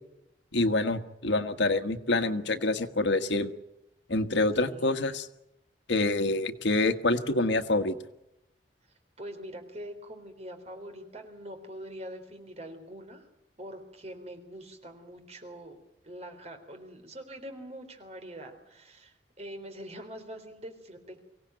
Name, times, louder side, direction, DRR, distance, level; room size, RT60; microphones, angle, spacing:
voice 1, 0.5-3.5 4.1-5.3 5.9-8.0, left 2 dB, 90° left, 9 dB, 1.5 m, -26 dB
voice 2, 4.5-5.1 8.9-13.3 13.6-15.8 16.0-21.3, equal, 35° right, 6 dB, 3.8 m, -44 dB
24.5 x 17.5 x 9.2 m, 0.86 s
head